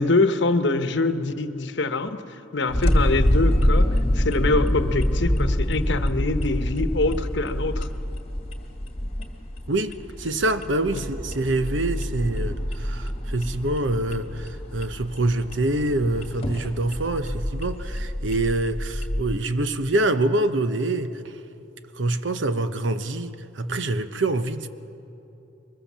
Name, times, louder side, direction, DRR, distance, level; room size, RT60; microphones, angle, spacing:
voice 1, 0.0-2.2 2.5-7.9 10.9-11.0 12.3-12.5, left 3 dB, 65° left, 9 dB, 1.0 m, -24 dB
sound 1, 2.7-19.2, equal, 30° left, 1.9 m, -26 dB
voice 2, 9.7-21.2 22.0-24.7, right 2 dB, 70° right, 10 dB, 0.9 m, -25 dB
23.0 x 21.5 x 7.4 m, 2.8 s
head